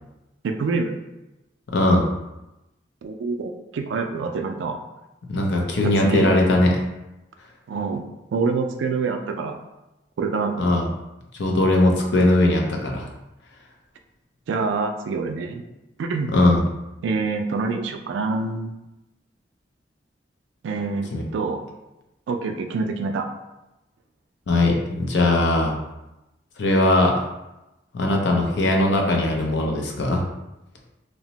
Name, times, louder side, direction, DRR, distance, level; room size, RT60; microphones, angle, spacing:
voice 1, 0.4-1.0 3.0-4.8 5.8-6.3 7.7-8.1 8.3-9.6 10.2-10.6 14.5-15.6 16.0-16.3 17.0-18.7 20.6-21.6 22.3-23.3, right 4 dB, 80° right, 6 dB, 0.3 m, -26 dB
voice 2, 1.7-2.1 5.3-6.8 10.6-10.9 11.4-13.1 16.3-16.6 21.1-21.2 24.5-25.7 26.6-27.1 27.9-30.2, left 1 dB, 70° left, 1 dB, 0.5 m, -19 dB
2.8 x 2.0 x 2.8 m, 0.96 s
head